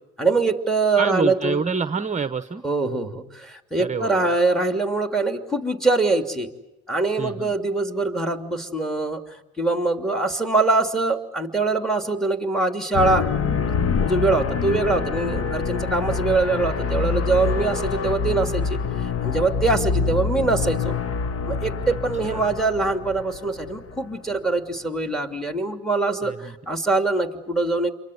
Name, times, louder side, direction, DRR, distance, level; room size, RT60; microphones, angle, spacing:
voice 1, 0.2-1.6 2.6-6.5 6.9-13.3 14.0-20.9 21.4-27.9, right 3 dB, ahead, 7 dB, 2.9 m, -23 dB
voice 2, 1.0-2.6 3.8-4.3 7.2-7.5 21.9-22.0 22.2-22.5 26.2-26.5, right 5 dB, 25° right, 10 dB, 1.0 m, -27 dB
sound 1, 12.9-24.2, left 5 dB, 50° left, 1.3 m, -26 dB
28.5 x 23.5 x 8.0 m, 0.94 s
cardioid pair, 90°, 30 cm